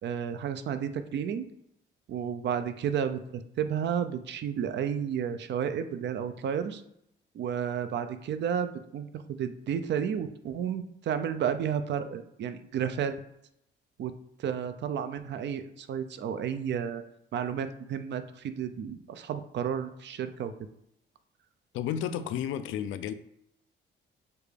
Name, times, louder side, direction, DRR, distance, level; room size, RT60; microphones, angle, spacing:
voice 1, 0.0-1.4 2.1-6.8 7.3-13.2 14.0-14.1 14.4-17.0 17.3-20.5, right 8 dB, 60° right, 10 dB, 0.5 m, -32 dB
voice 2, 21.7-23.1, left 9 dB, 85° left, 11 dB, 0.4 m, -32 dB
6.7 x 2.4 x 3.3 m, 0.76 s
cardioid pair, 90°, 20 cm